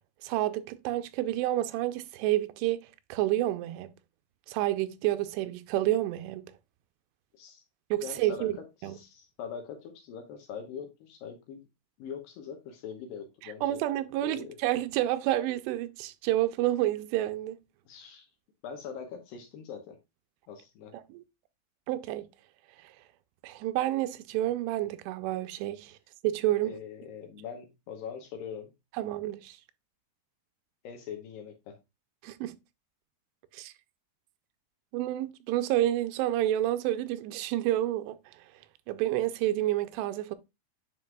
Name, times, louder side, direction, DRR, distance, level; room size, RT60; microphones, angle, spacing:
voice 1, 0.2-3.9 4.5-6.5 7.9-8.5 8.8-9.0 13.4-17.6 21.1-21.2 21.9-22.3 23.4-26.0 26.2-26.8 29.0-29.6 32.2-32.6 33.5-33.7 34.9-38.2 38.9-40.4, right 14 dB, 90° right, 2.7 m, -29 dB
voice 2, 7.3-7.6 8.0-8.5 8.8-11.6 12.0-13.8 14.2-14.6 17.9-18.3 18.6-20.0 20.5-20.9 26.6-28.7 30.8-31.8, left 7 dB, 70° left, 2.4 m, -42 dB
9.5 x 4.6 x 2.2 m
omnidirectional pair, 4.8 m